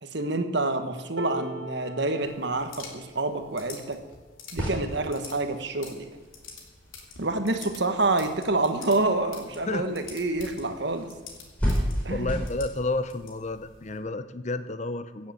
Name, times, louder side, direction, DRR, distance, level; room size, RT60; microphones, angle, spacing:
voice 1, 0.0-4.0 4.5-6.1 7.2-11.1 12.0-12.3, right 2 dB, 55° right, 8 dB, 1.3 m, -27 dB
sound 1, 1.2-7.3 7.9-8.1 8.4-9.2 10.1-10.2, left 1 dB, 75° right, 1.5 m, -45 dB
sound 2, 2.2-14.0, left 5 dB, 85° left, 2.8 m, -48 dB
sound 3, 4.5-12.5, equal, 5° left, 5.1 m, -35 dB
voice 2, 12.1-15.3, left 2 dB, 35° left, 12 dB, 0.6 m, -31 dB
16.5 x 7.6 x 7.8 m, 1.3 s
head